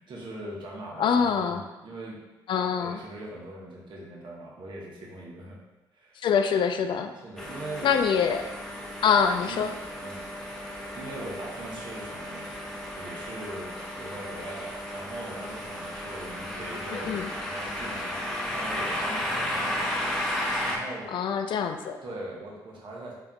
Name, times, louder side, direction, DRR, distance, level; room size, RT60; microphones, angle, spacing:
voice 1, 0.0-2.2 2.8-5.6 5.9-6.2 7.1-7.9 9.4-9.6 10.0-10.2 10.9-12.5 13.0-13.7 14.0-18.2 18.5-19.9 20.6-21.2 22.0-23.1, right 1 dB, 50° right, -3 dB, 1.0 m, -40 dB
voice 2, 1.0-1.6 2.5-3.0 6.2-7.1 7.8-8.5 9.0-9.7 16.9-17.3 21.1-22.0, left 6 dB, 50° left, 7 dB, 0.4 m, -25 dB
sound 1, 7.4-20.8, left 1 dB, 5° left, 0.9 m, -34 dB
4.1 x 3.4 x 2.3 m, 1.1 s
hypercardioid pair, 50°, 10 cm